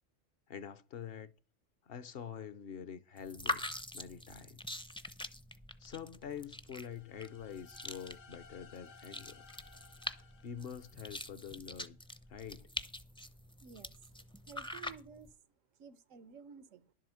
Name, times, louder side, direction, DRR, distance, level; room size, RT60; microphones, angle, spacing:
voice 1, 0.5-1.3 1.8-3.6 3.9-4.8 5.8-9.4 10.4-12.0 12.3-12.7, left 8 dB, 55° left, 0.8 m, -46 dB
sound 1, 3.2-15.3, left 1 dB, 5° left, 0.4 m, -44 dB
sound 2, 6.7-11.6, left 5 dB, 80° left, 1.2 m, -60 dB
voice 2, 13.6-14.1 14.5-15.4 15.8-16.9, right 6 dB, 90° right, 1.2 m, -53 dB
11.5 x 7.7 x 6.3 m
omnidirectional pair, 1.3 m